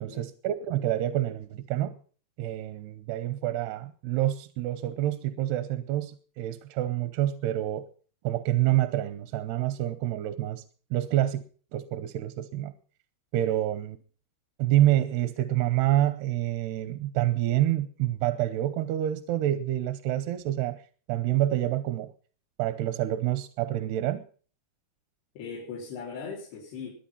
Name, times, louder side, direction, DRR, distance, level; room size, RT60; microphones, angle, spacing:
voice 1, 0.0-1.9 2.4-7.9 8.2-10.6 10.9-11.4 11.7-12.7 13.3-14.0 14.6-20.8 21.1-22.1 22.6-24.2, right 13 dB, 90° right, 11 dB, 2.9 m, -27 dB
voice 2, 25.4-26.9, left 5 dB, 90° left, -5 dB, 5.9 m, -39 dB
22.0 x 9.2 x 5.6 m, 0.42 s
omnidirectional pair, 4.6 m